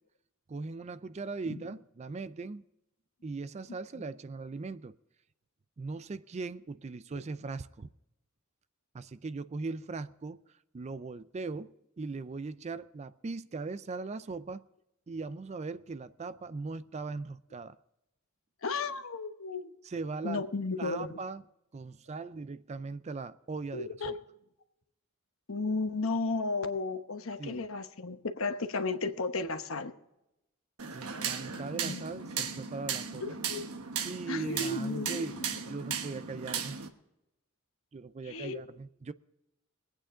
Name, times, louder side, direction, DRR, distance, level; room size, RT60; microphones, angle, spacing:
voice 1, 0.5-2.6 3.2-5.0 5.8-7.9 8.9-10.4 10.7-14.6 15.1-17.8 19.8-20.5 20.8-21.4 21.7-24.1 27.4-27.6 30.9-33.2 34.0-36.8 37.9-39.1, right 4 dB, 30° right, 0.4 m, -39 dB
voice 2, 18.6-19.7 20.2-21.2 23.7-24.2 25.5-29.9 31.5-32.1 32.3-32.4 33.2-33.6 34.3-35.4 35.9-36.0 38.2-38.6, left 3 dB, 65° left, 1.1 m, -34 dB
sound 1, 30.8-36.9, right 7 dB, 90° right, 1.2 m, -36 dB
22.0 x 8.8 x 3.8 m
head